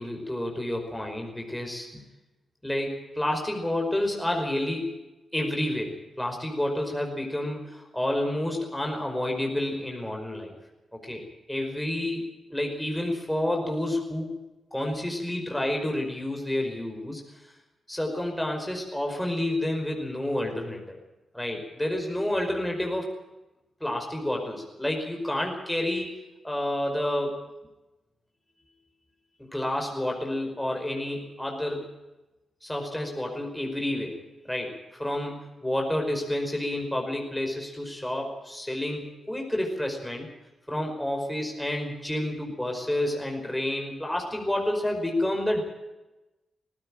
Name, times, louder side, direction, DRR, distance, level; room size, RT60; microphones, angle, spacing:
voice 1, 0.0-2.0 2.6-4.9 5.3-10.5 10.9-11.2 11.5-14.3 14.7-17.2 17.9-21.0 21.3-23.1 23.8-26.1 26.4-27.4 29.5-31.9 32.6-34.2 34.5-40.3 40.7-45.6, left 1 dB, 5° left, 1 dB, 5.2 m, -29 dB
19.0 x 16.5 x 8.9 m, 1.0 s
cardioid pair, 95°, 0 cm